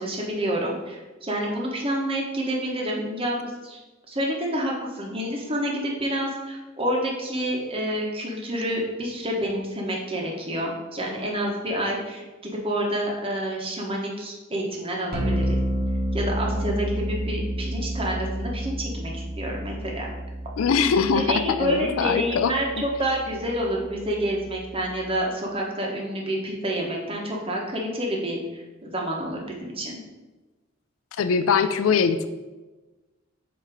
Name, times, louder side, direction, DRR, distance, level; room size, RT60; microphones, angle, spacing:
voice 1, 0.0-3.8 4.1-15.6 16.1-20.1 21.1-30.0, equal, 25° right, -1 dB, 1.1 m, -28 dB
sound 1, 15.1-25.2, equal, 45° right, 1.2 m, -31 dB
voice 2, 20.6-22.5 31.2-32.3, left 6 dB, 80° left, 11 dB, 0.4 m, -22 dB
7.5 x 2.9 x 5.0 m, 1.2 s
head